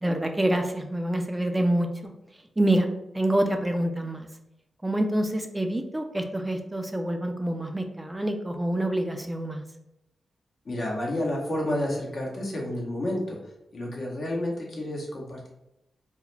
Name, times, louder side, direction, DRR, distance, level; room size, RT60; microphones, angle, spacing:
voice 1, 0.0-2.1 2.6-2.9 3.1-4.3 4.8-9.6, right 1 dB, 20° right, 5 dB, 0.3 m, -26 dB
voice 2, 10.6-15.5, left 1 dB, 60° left, -2 dB, 0.8 m, -30 dB
2.3 x 2.0 x 3.1 m, 0.86 s
supercardioid pair, 45°, 0 cm